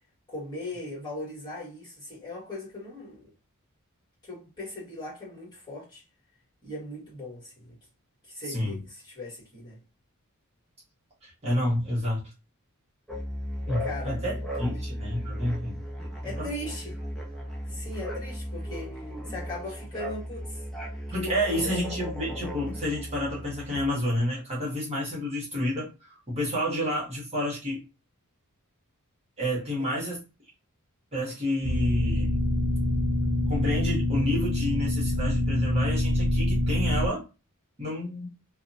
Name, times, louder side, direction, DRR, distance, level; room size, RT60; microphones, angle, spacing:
voice 1, 0.3-3.3 4.2-6.0 6.6-7.8 8.3-9.8 13.8-14.7 16.2-17.0 17.7-20.6 21.1-21.7 29.8-29.9, left 1 dB, 20° left, 1.5 m, -39 dB
voice 2, 11.2-12.2 13.7-15.8 16.4-16.5 21.1-27.8 29.4-30.2 31.1-32.4 33.5-37.2 37.8-38.3, left 1 dB, 30° right, 0.9 m, -30 dB
sound 1, 13.1-23.9, equal, 5° left, 0.5 m, -36 dB
sound 2, 31.6-37.1, left 1 dB, 90° right, 0.5 m, -25 dB
2.7 x 2.0 x 2.6 m
head